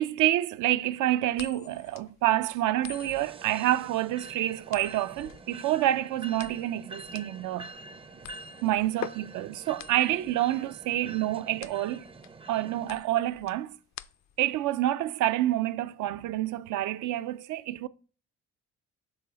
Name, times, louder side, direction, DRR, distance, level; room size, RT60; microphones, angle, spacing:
voice 1, 0.0-7.8 8.6-12.1 12.5-13.8 14.4-17.9, right 14 dB, 80° right, 0.5 m, -28 dB
sound 1, 1.3-14.5, left 11 dB, 65° left, 0.5 m, -45 dB
sound 2, 2.9-13.0, right 3 dB, 20° right, 0.4 m, -47 dB
7.1 x 3.8 x 3.9 m
cardioid pair, 90°, 30 cm